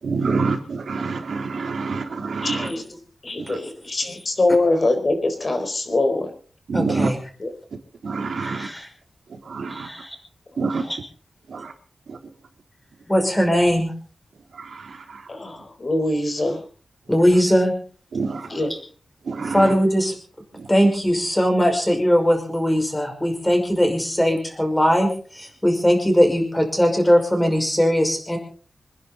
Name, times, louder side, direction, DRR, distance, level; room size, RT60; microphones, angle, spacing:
voice 1, 0.0-2.7 3.4-3.6 6.7-7.1 8.0-8.7 9.3-9.9 10.6-10.8 11.5-11.7 12.1-12.2 14.5-15.3 18.1-18.5 19.2-19.7 20.5-20.7, right 4 dB, 80° right, 3.7 m, -27 dB
voice 2, 2.4-2.8 3.2-6.3 7.4-7.5 15.3-16.6 18.5-18.7, left 2 dB, 35° left, 4.4 m, -23 dB
voice 3, 6.7-7.2 8.4-8.9 9.7-10.2 10.8-11.0 13.1-13.9 17.1-17.7 19.5-20.1 20.7-28.4, equal, 10° left, 5.7 m, -20 dB
27.0 x 11.0 x 4.1 m
wide cardioid pair, 160°, 0 cm